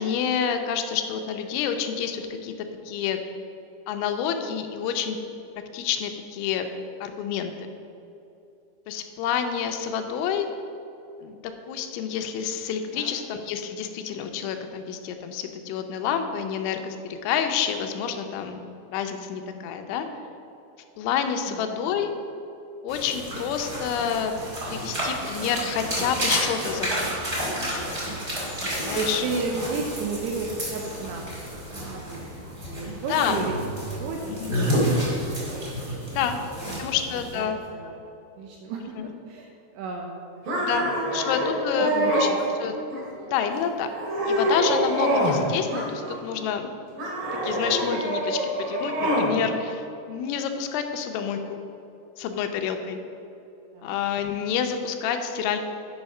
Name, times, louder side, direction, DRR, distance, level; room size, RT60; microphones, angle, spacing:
voice 1, 0.0-2.5 2.9-3.2 3.9-5.2 5.7-6.7 7.0-7.5 8.9-10.5 11.2-11.4 11.7-17.0 17.2-18.6 18.9-20.1 21.0-22.1 22.8-24.3 24.7-27.8 28.9-29.2 32.8-33.5 34.3-34.5 36.1-36.4 36.8-37.9 39.0-39.1 40.6-42.3 42.6-42.8 43.3-43.9 44.3-46.7 47.4-48.4 48.7-51.6 52.2-53.0 53.8-55.6, left 8 dB, 90° left, 6 dB, 3.1 m, -28 dB
voice 2, 21.5-21.9 28.9-31.3 31.9-33.6 33.9-35.9 36.6-36.9 37.3-38.0 38.4-40.2 40.7-41.3 41.9-42.4 53.7-54.0, right 4 dB, 80° right, 1 dB, 2.3 m, -34 dB
sound 1, 22.9-37.4, equal, 35° right, 1.0 m, -30 dB
sound 2, 40.5-42.4 42.9-43.4 43.8-45.4 45.7-46.4 47.0-49.3, right 1 dB, 55° right, 3.1 m, -26 dB
9.1 x 5.6 x 5.4 m, 2.8 s
omnidirectional pair, 5.3 m